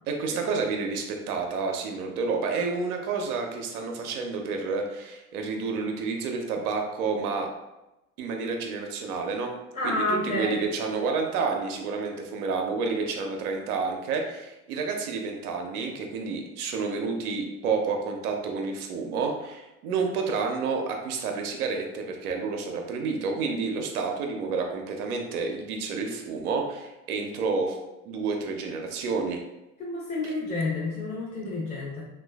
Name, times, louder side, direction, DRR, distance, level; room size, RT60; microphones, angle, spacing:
voice 1, 0.1-7.5 8.2-9.5 9.8-27.8 28.1-29.4 30.2-30.3, right 4 dB, 80° right, 2 dB, 0.6 m, -29 dB
voice 2, 9.7-10.6 29.8-32.1, left 2 dB, 15° left, -6 dB, 0.7 m, -29 dB
3.0 x 2.3 x 2.3 m, 0.95 s
hypercardioid pair, 70°, 44 cm